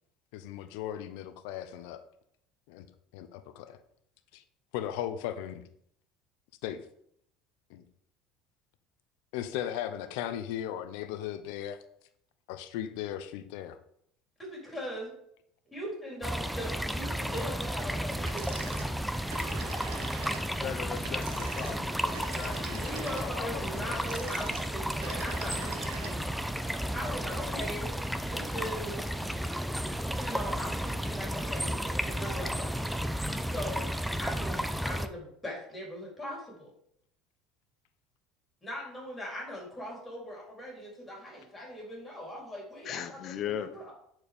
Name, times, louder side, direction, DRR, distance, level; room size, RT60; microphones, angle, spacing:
voice 1, 0.3-2.0 2.7-2.9 3.1-3.8 4.3-4.4 4.7-5.6 6.6-6.8 7.7-7.8 9.3-11.8 12.5-13.8, left 11 dB, 80° left, 0.7 m, -37 dB
voice 2, 14.4-15.1 15.7-18.9 22.8-26.4 26.9-27.9 28.3-29.1 30.2-32.7 33.5-33.9 34.2-36.7 38.6-43.2 43.5-43.9, equal, 15° left, 3.9 m, -40 dB
sound 1, 16.2-35.1, equal, ahead, 0.6 m, -33 dB
sound 2, 18.3-26.4, right 6 dB, 90° right, 1.2 m, -44 dB
voice 3, 20.2-22.9 23.2-24.1 42.8-43.7, left 9 dB, 45° left, 0.7 m, -39 dB
8.8 x 4.6 x 5.1 m
supercardioid pair, 115°, 0 cm